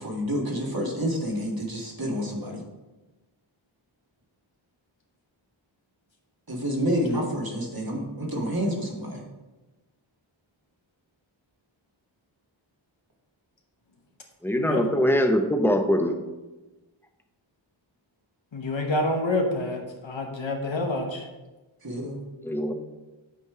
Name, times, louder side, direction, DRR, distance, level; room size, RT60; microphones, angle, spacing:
voice 1, 0.0-2.6 6.5-9.2 21.8-22.2, equal, 45° right, -2 dB, 1.6 m, -29 dB
voice 2, 14.4-16.1 22.4-22.7, equal, 5° left, 5 dB, 0.7 m, -22 dB
voice 3, 18.5-21.3, left 2 dB, 65° left, 2 dB, 0.9 m, -28 dB
8.3 x 3.1 x 4.8 m, 1.1 s
wide cardioid pair, 45°, 49 cm